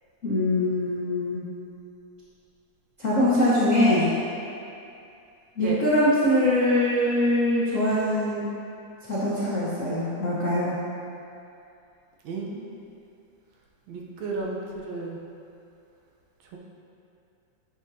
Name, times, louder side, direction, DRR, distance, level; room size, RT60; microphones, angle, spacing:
voice 1, 0.2-1.4 3.0-4.1 5.6-8.5 9.1-10.7, left 1 dB, 70° left, -9 dB, 0.7 m, -23 dB
voice 2, 12.2-12.6 13.9-15.2 16.5-16.6, right 3 dB, 70° right, -2 dB, 2.0 m, -33 dB
10.5 x 7.3 x 2.8 m, 2.6 s
omnidirectional pair, 3.5 m